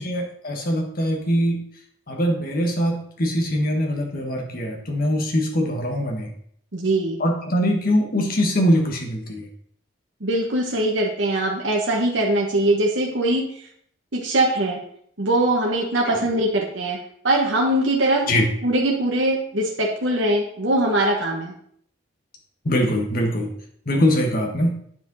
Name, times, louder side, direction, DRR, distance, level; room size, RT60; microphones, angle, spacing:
voice 1, 0.0-1.6 2.1-6.3 7.2-9.5 16.0-16.2 18.2-18.5 22.6-23.5 23.8-24.8, equal, 45° left, 2 dB, 1.4 m, -22 dB
voice 2, 6.7-7.2 10.2-13.4 14.1-14.8 15.2-17.0 17.2-18.3 18.6-21.5, right 1 dB, 65° right, -1 dB, 1.2 m, -21 dB
9.1 x 5.0 x 4.0 m, 0.66 s
head